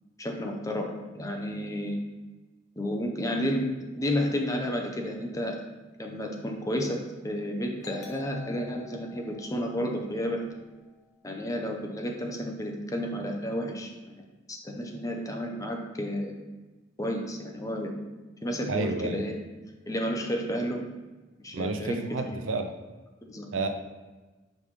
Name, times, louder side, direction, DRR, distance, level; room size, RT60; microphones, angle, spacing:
voice 1, 0.2-2.0 2.8-3.7 3.9-5.6 6.0-7.0 7.2-10.4 11.2-16.3 17.0-17.9 18.4-19.3 19.9-20.8 21.4-22.0 23.2-23.5, equal, 15° left, 1 dB, 0.7 m, -31 dB
Doorbell, 7.8-11.2, left 4 dB, 55° left, 1.1 m, -50 dB
voice 2, 18.7-19.2 21.5-22.7 23.5-23.7, right 3 dB, 85° right, 6 dB, 0.6 m, -30 dB
5.5 x 5.3 x 3.3 m, 1.2 s
head